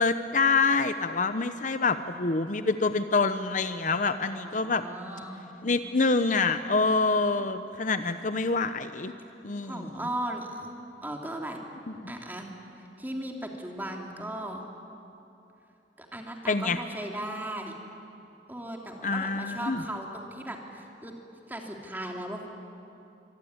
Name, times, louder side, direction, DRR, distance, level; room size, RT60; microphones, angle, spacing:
voice 1, 0.0-4.8 5.6-9.1 9.4-9.9 12.0-12.1 16.5-16.8 19.0-19.8, left 4 dB, 45° left, 10 dB, 0.8 m, -26 dB
voice 2, 4.1-5.5 8.0-8.1 9.6-10.8 11.0-11.6 12.1-12.5 13.0-14.6 16.0-17.8 18.5-21.1 21.5-22.5, right 1 dB, 10° right, 1 dB, 2.9 m, -37 dB
25.0 x 24.0 x 9.6 m, 2.8 s
head